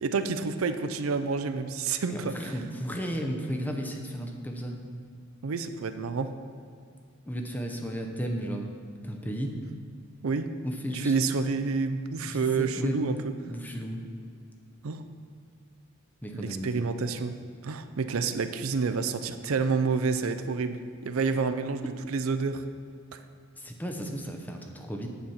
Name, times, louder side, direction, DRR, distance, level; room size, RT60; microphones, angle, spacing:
voice 1, 0.0-2.6 5.4-6.3 10.2-10.5 10.9-13.3 14.8-15.0 16.3-17.4 17.6-22.6 23.1-23.2, right 4 dB, 80° right, 10 dB, 0.5 m, -29 dB
voice 2, 2.1-4.8 7.3-8.7 9.0-9.6 10.6-11.1 12.2-13.0 13.5-14.0 16.2-16.8 23.6-25.1, equal, 10° left, 2 dB, 0.7 m, -34 dB
9.1 x 4.3 x 7.1 m, 2.3 s
head